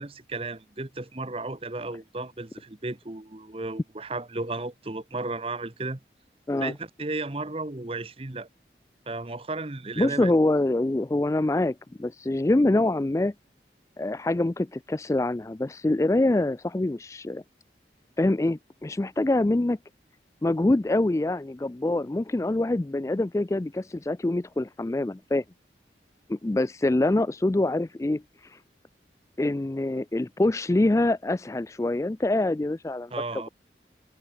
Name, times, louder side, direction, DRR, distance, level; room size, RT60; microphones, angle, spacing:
voice 1, 0.0-6.0 6.6-8.5 9.1-10.3 33.1-33.5, right 2 dB, 30° right, 1.0 m, -34 dB
voice 2, 10.0-13.3 14.0-17.4 18.2-19.8 20.4-25.4 26.3-28.6 29.4-33.1, left 2 dB, 15° left, 0.3 m, -25 dB
head